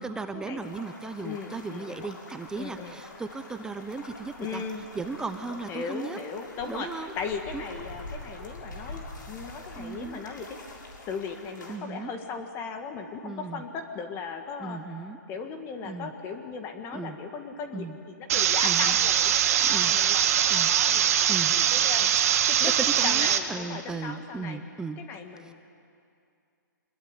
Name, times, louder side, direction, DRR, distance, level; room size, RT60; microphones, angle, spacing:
voice 1, 0.0-4.6 4.9-6.2 6.7-7.1 7.5-7.6 9.8-10.3 11.7-12.1 13.2-13.6 14.6-15.2 15.8-16.1 16.9-17.2 17.7-18.0 18.6-19.0 19.6-19.9 20.5-20.7 21.3-21.5 23.0-25.0, right 4 dB, 5° right, 9 dB, 0.8 m, -36 dB
sound 1, 0.6-11.8, left 2 dB, 75° left, 6.4 m, -45 dB
voice 2, 1.2-2.1 2.6-3.0 4.4-4.9 5.7-10.6 11.0-14.8 15.3-22.1 22.5-22.7 23.0-24.6 25.0-25.5, left 5 dB, 25° left, 6 dB, 1.8 m, -37 dB
sound 2, 18.3-23.4, right 10 dB, 50° right, 1.8 m, -22 dB
25.5 x 21.5 x 9.8 m, 2.5 s
hypercardioid pair, 145°, 10 cm